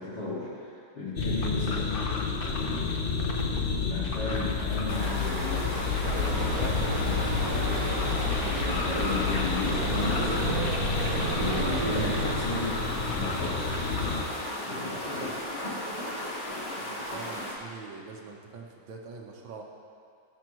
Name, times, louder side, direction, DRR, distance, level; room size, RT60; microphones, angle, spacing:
voice 1, 0.0-1.9 2.4-3.0 3.9-7.7 8.6-13.8 14.6-15.7, left 3 dB, 55° left, -10 dB, 2.6 m, -36 dB
sound 1, 1.2-14.2, left 5 dB, 90° left, 0.4 m, -30 dB
sound 2, 4.9-17.5, left 1 dB, 20° left, 1.7 m, -35 dB
sound 3, 6.0-12.4, right 3 dB, 55° right, 1.3 m, -33 dB
voice 2, 16.8-19.6, right 5 dB, 70° right, 0 dB, 1.9 m, -44 dB
18.5 x 6.7 x 3.1 m, 2.5 s
omnidirectional pair, 2.2 m